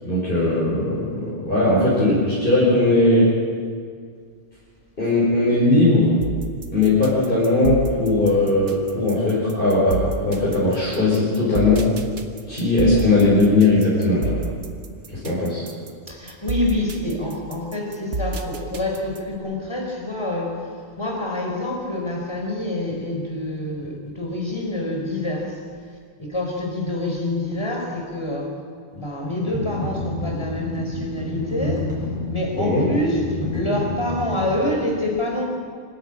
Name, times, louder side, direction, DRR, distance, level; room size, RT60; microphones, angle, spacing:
voice 1, 0.0-3.4 5.0-6.2 6.7-11.9 12.5-14.4 15.1-15.6 32.6-32.9, left 2 dB, 50° left, -9 dB, 5.4 m, -19 dB
sound 1, 6.2-19.4, right 2 dB, 85° right, 1.7 m, -30 dB
voice 2, 16.1-25.6 26.2-28.5 28.9-31.9 32.3-33.2 33.5-35.4, left 1 dB, 25° left, 0 dB, 4.4 m, -26 dB
sound 2, 29.5-34.6, left 2 dB, 5° right, 7.3 m, -29 dB
26.0 x 12.0 x 8.7 m, 2.1 s
omnidirectional pair, 1.2 m